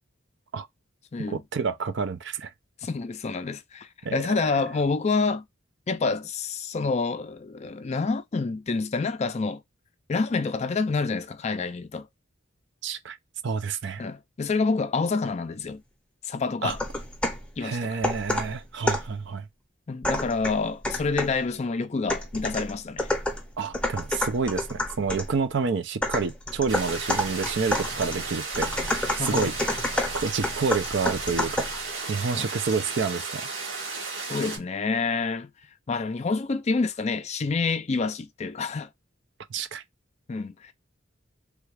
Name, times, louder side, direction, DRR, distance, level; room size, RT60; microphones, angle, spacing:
voice 1, 1.3-2.5 4.0-4.1 4.4-4.6 12.8-13.2 13.4-14.0 16.6-16.7 17.6-19.5 23.6-29.6 30.1-31.7 32.1-33.5 39.5-39.8, right 5 dB, 60° right, 0.5 m, -29 dB
voice 2, 2.8-5.5 5.9-9.6 10.1-12.1 14.0-15.8 16.2-16.8 17.6-18.0 19.9-23.1 29.2-29.5 32.4-32.5 34.3-35.5 35.9-38.9 40.3-40.7, left 4 dB, 35° left, 0.4 m, -28 dB
sound 1, 16.7-17.5 18.0-19.2 20.0-21.4 22.1-25.3 26.0-31.8, left 1 dB, 5° left, 0.7 m, -29 dB
sound 2, 26.7-34.6, right 4 dB, 80° right, 1.6 m, -34 dB
3.3 x 2.4 x 3.2 m
head